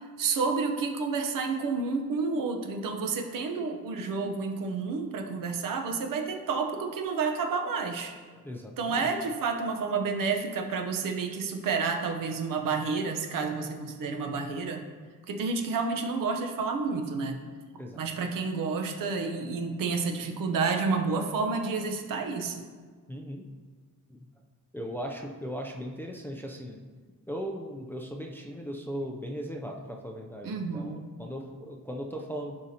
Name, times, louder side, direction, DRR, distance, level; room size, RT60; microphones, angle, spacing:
voice 1, 0.2-8.1 8.8-14.8 15.3-17.4 18.0-22.6 30.4-31.0, right 4 dB, 70° right, 4 dB, 0.9 m, -30 dB
voice 2, 8.3-9.1 17.8-18.0 19.2-19.3 20.0-20.1 23.1-23.5 24.1-24.2 24.7-26.8 27.3-32.6, equal, 5° left, 1 dB, 0.4 m, -38 dB
11.5 x 4.9 x 2.8 m, 1.5 s
cardioid pair, 150°, 34 cm